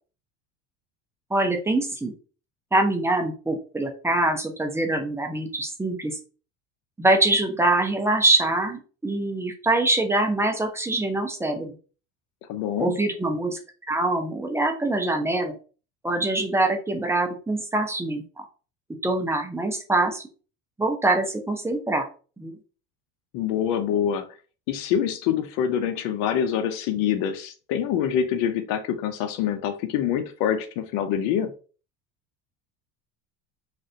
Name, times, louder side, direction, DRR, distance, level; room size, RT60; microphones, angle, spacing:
voice 1, 1.3-2.1 2.7-6.2 7.0-11.7 12.8-13.6 13.9-15.5 16.0-18.4 19.0-20.2 20.8-22.1 22.4-22.5, right 2 dB, 10° right, 4 dB, 0.5 m, -24 dB
voice 2, 12.5-12.9 23.3-24.3 24.7-31.5, left 9 dB, 70° left, 8 dB, 0.6 m, -25 dB
3.2 x 2.4 x 2.7 m, 0.36 s
supercardioid pair, 115°, 33 cm